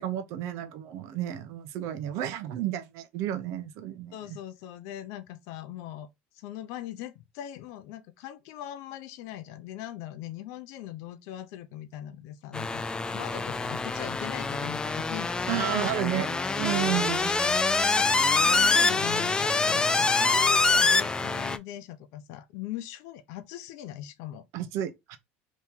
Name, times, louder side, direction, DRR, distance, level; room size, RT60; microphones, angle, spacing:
voice 1, 0.0-4.4 15.5-17.3 24.5-25.2, right 11 dB, 70° right, 0.7 m, -32 dB
voice 2, 4.1-6.1 6.3-12.8 13.1-16.2 17.2-17.9 18.3-24.4, left 12 dB, 75° left, 0.5 m, -40 dB
sound 1, 12.5-21.6, left 3 dB, 15° left, 0.3 m, -25 dB
3.0 x 2.8 x 3.5 m
supercardioid pair, 115°, 5 cm